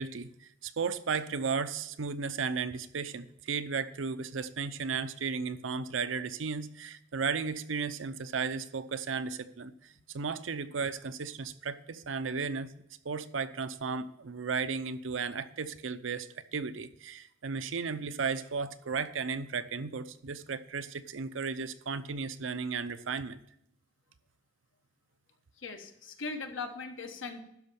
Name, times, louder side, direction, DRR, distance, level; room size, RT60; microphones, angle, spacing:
voice 1, 0.0-23.4, right 5 dB, 80° right, 12 dB, 0.6 m, -35 dB
voice 2, 25.6-27.4, left 4 dB, 90° left, 5 dB, 1.4 m, -39 dB
12.0 x 5.2 x 6.9 m, 0.78 s
head